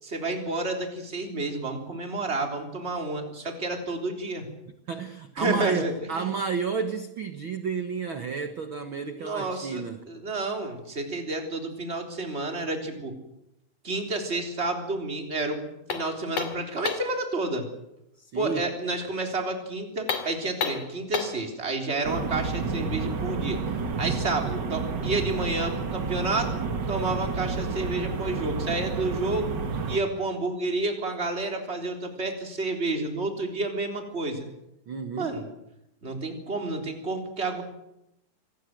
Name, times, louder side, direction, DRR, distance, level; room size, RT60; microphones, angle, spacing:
voice 1, 0.0-4.5 5.4-6.3 9.2-9.8 10.1-13.2 13.8-17.7 18.3-23.6 24.0-26.5 26.9-29.5 29.9-34.5 35.2-35.4 36.0-37.6, right 2 dB, 15° right, 3 dB, 3.5 m, -30 dB
voice 2, 4.9-10.1 18.2-18.7 34.9-35.3, right 5 dB, 70° right, 8 dB, 1.2 m, -31 dB
sound 1, 15.9-17.2 20.0-21.5, left 6 dB, 55° left, 3.6 m, -31 dB
sound 2, 22.0-30.0, right 4 dB, 45° right, 1.4 m, -30 dB
26.0 x 19.0 x 7.8 m, 0.85 s
omnidirectional pair, 4.3 m